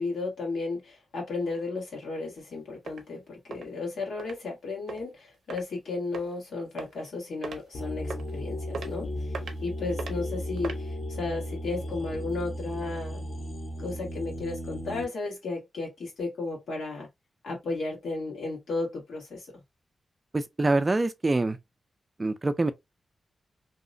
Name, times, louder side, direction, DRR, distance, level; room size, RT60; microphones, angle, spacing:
voice 1, 0.0-13.2 13.8-17.1 17.4-19.5, left 3 dB, 80° left, 1.4 m, -34 dB
sound 1, 2.4-2.5 2.9-3.0 3.5-3.7 4.2-4.4 4.9-5.0 5.5-5.6 6.1-6.3 6.8-7.1 7.4-7.6 8.1-8.3 8.7-8.9 9.3-9.6 10.0-10.1 10.6-10.8, right 5 dB, 85° right, 0.5 m, -37 dB
sound 2, 7.7-15.0, equal, 50° left, 0.7 m, -35 dB
voice 2, 20.3-21.6 22.2-22.7, right 2 dB, 25° right, 0.4 m, -25 dB
2.8 x 2.0 x 2.5 m
wide cardioid pair, 95°, 0 cm